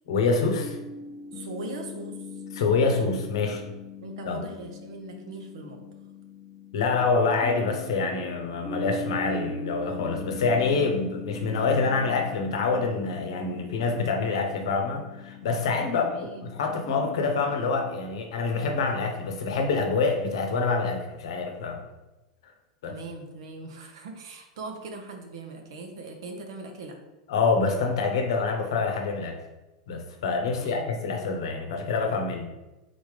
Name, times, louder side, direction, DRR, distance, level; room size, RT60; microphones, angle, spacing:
voice 1, 0.1-0.8 2.5-3.6 4.3-4.4 6.7-21.8 22.4-22.5 22.8-22.9 27.3-29.4 29.9-32.5, left 4 dB, 70° left, 3 dB, 0.8 m, -26 dB
sound 1, 0.6-18.0, left 4 dB, 25° left, 0.4 m, -40 dB
voice 2, 1.3-2.4 4.0-5.8 16.1-16.7 22.8-27.0 30.5-31.0, right 3 dB, 70° right, 4 dB, 0.8 m, -40 dB
3.9 x 3.5 x 3.3 m, 1.0 s
hypercardioid pair, 95°, 3 cm